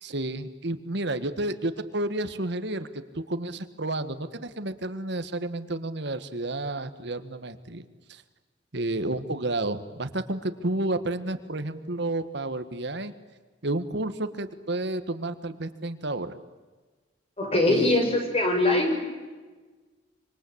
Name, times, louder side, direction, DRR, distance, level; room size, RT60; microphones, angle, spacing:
voice 1, 0.0-2.9 3.1-8.2 8.7-13.1 13.6-16.4 17.7-18.0, right 2 dB, 65° right, 10 dB, 1.7 m, -31 dB
voice 2, 17.4-19.0, left 2 dB, 35° left, 3 dB, 6.5 m, -22 dB
26.0 x 25.5 x 8.7 m, 1.3 s
head